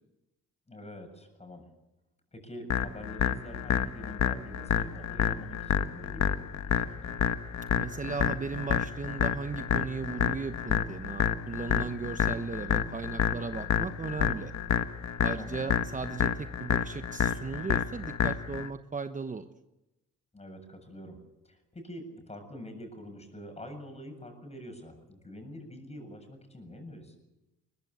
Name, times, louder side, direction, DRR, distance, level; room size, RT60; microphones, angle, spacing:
voice 1, 0.7-1.7 2.3-7.2 15.4-15.8 20.3-21.2 21.4-27.2, left 1 dB, 20° left, 6 dB, 7.4 m, -45 dB
sound 1, 2.7-18.7, left 9 dB, 65° left, 1.3 m, -29 dB
voice 2, 7.8-14.5 15.2-19.5, right 5 dB, 25° right, 9 dB, 1.0 m, -36 dB
22.0 x 20.0 x 8.3 m, 0.96 s
cardioid pair, 90°, 30 cm